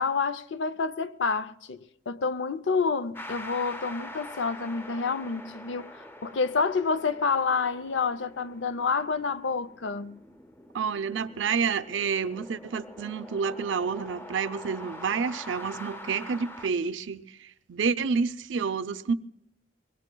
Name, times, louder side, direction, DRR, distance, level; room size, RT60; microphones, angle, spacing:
voice 1, 0.0-10.3, left 5 dB, 70° left, 0.5 m, -28 dB
sound 1, 3.1-16.7, left 1 dB, 10° left, 0.5 m, -45 dB
voice 2, 10.7-17.2 17.7-19.1, right 5 dB, 80° right, 0.5 m, -29 dB
22.5 x 21.5 x 2.3 m
head